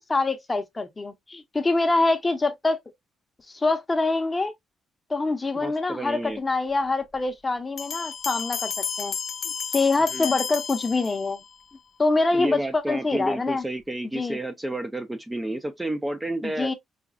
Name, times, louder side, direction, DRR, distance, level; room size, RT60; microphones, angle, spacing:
voice 1, 0.0-2.8 3.5-4.5 5.1-8.7 9.0-9.1 9.7-11.4 12.0-13.6 14.1-14.4 16.4-16.7, left 3 dB, 20° left, 0.7 m, -25 dB
voice 2, 5.6-6.4 10.1-10.3 12.3-16.7, right 1 dB, 10° right, 0.5 m, -31 dB
sound 1, 7.8-11.6, left 7 dB, 55° left, 0.4 m, -32 dB
4.9 x 2.2 x 2.2 m
cardioid pair, 90°, 0 cm